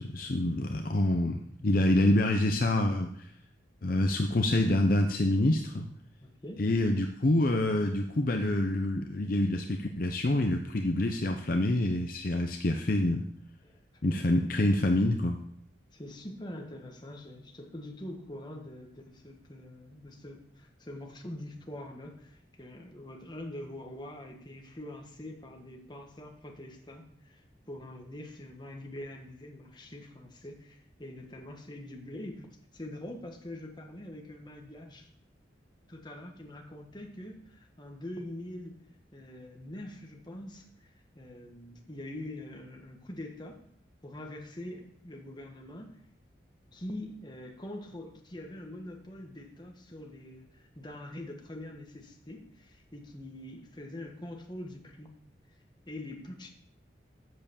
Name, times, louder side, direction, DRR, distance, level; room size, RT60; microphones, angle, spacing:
voice 1, 0.0-3.3 3.8-5.8 6.6-13.2 14.0-15.4, left 1 dB, 50° left, 4 dB, 0.7 m, -27 dB
voice 2, 6.2-6.7 13.6-14.0 15.9-35.1 35.9-38.8 39.1-43.6 44.0-46.0 46.7-55.1 55.9-56.5, left 1 dB, 25° left, 2 dB, 1.5 m, -44 dB
7.8 x 7.2 x 7.0 m, 0.67 s
head